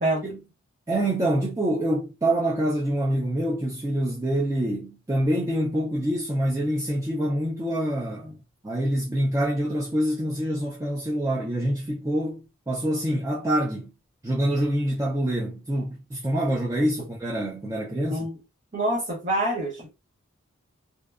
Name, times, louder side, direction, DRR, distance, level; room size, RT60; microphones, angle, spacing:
voice 1, 0.9-8.4 8.6-13.9 14.2-18.3, right 1 dB, 15° right, 0.3 m, -26 dB
voice 2, 18.7-19.9, right 1 dB, 35° right, 0.7 m, -26 dB
2.7 x 2.1 x 2.3 m
head